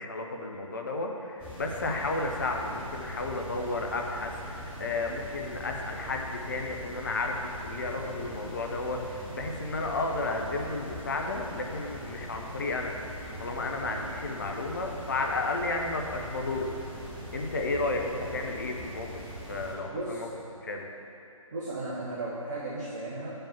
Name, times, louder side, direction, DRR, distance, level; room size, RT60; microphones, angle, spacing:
voice 1, 0.0-12.9 13.4-16.8 17.3-19.1 19.5-20.3 20.6-20.9, left 2 dB, 35° left, 2 dB, 0.8 m, -32 dB
sound 1, 1.4-19.7, equal, 10° right, 1.6 m, -42 dB
voice 2, 19.9-20.3 21.5-23.3, right 2 dB, 30° right, -7 dB, 1.1 m, -35 dB
7.0 x 5.5 x 7.1 m, 2.9 s
figure-of-eight pair, 150°, 18 cm